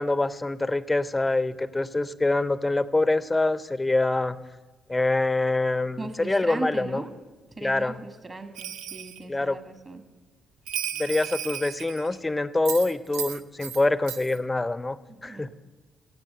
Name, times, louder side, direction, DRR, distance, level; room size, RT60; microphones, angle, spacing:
voice 1, 0.0-4.4 4.9-7.0 7.6-8.0 9.3-9.6 11.0-15.0 15.2-15.5, left 2 dB, 20° left, 17 dB, 0.6 m, -25 dB
voice 2, 6.0-7.1 7.6-10.0 15.1-15.5, right 3 dB, 35° right, 8 dB, 1.8 m, -38 dB
Bell, 8.6-9.2 10.7-12.2 12.7-13.8 14.1-14.4, right 10 dB, 75° right, 0.4 m, -35 dB
17.0 x 7.3 x 6.5 m, 1.3 s
hypercardioid pair, 45°, 0 cm